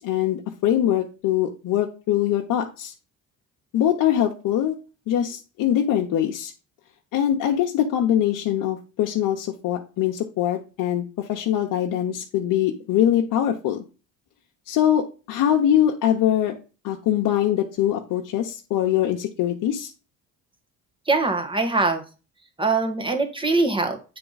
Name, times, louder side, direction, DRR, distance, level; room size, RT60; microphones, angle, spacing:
voice 1, 0.0-2.9 3.7-4.7 5.1-6.5 7.1-13.8 14.7-16.5 16.8-19.9, left 11 dB, 70° left, 0 dB, 1.0 m, -23 dB
voice 2, 21.1-22.0 22.6-24.0, right 3 dB, 15° right, 5 dB, 1.6 m, -22 dB
8.8 x 3.4 x 4.0 m, 0.33 s
cardioid pair, 90°, 33 cm